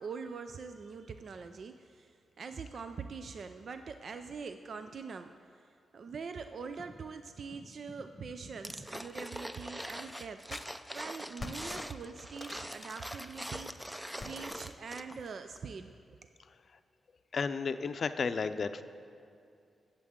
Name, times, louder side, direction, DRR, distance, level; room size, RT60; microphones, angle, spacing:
voice 1, 0.0-5.3 5.9-15.9, right 5 dB, 60° right, 8 dB, 0.4 m, -43 dB
sound 1, 6.8-7.1 7.5-9.0 10.5-10.7 11.4-13.6 14.2-14.7, left 3 dB, 35° left, 0.9 m, -48 dB
sound 2, 8.6-15.3 15.6-15.7, equal, 5° right, 0.5 m, -43 dB
voice 2, 17.3-18.8, left 5 dB, 60° left, 10 dB, 0.5 m, -32 dB
20.5 x 7.4 x 3.7 m, 2.5 s
cardioid pair, 65°, 0 cm